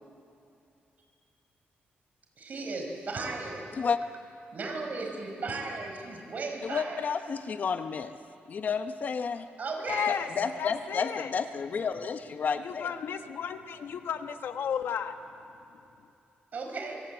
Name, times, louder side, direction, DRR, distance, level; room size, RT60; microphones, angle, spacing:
voice 1, 2.4-3.7 4.5-7.0 9.6-10.2 16.5-17.0, right 3 dB, 45° right, 2 dB, 5.0 m, -36 dB
voice 2, 6.6-8.1 8.5-9.5 10.1-12.9, left 6 dB, 50° left, 8 dB, 1.0 m, -31 dB
voice 3, 9.9-10.3 10.6-11.3 12.6-15.1, left 8 dB, 75° left, 7 dB, 1.4 m, -33 dB
25.0 x 24.5 x 8.3 m, 2.7 s
wide cardioid pair, 145°, 4 cm